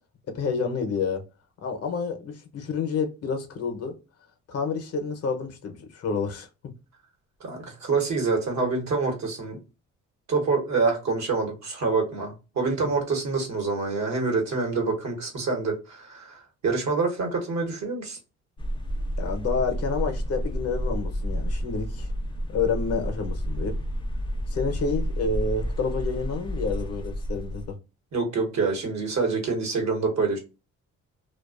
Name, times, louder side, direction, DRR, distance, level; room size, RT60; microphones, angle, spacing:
voice 1, 0.3-1.2 1.6-4.0 4.5-6.7 19.2-22.1 22.5-23.8 24.5-27.8, left 5 dB, 55° left, 0.7 m, -29 dB
voice 2, 7.4-9.6 10.3-18.2 28.1-30.4, right 4 dB, 65° right, 1.0 m, -26 dB
sound 1, 18.6-27.7, equal, 15° left, 0.5 m, -30 dB
2.4 x 2.2 x 2.3 m
cardioid pair, 90°, 30 cm